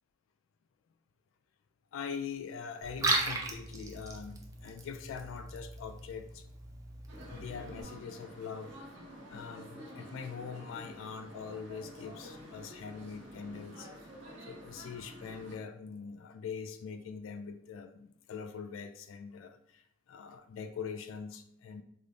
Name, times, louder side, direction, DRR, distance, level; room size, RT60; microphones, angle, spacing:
voice 1, 1.9-6.5 7.3-8.7 9.3-14.1 14.4-21.8, left 6 dB, 80° left, 8 dB, 0.3 m, -43 dB
Liquid, 2.8-7.8, right 2 dB, 15° right, 0.4 m, -37 dB
sound 1, 7.1-15.5, equal, 65° right, 1.0 m, -49 dB
4.8 x 2.0 x 2.6 m, 0.73 s
head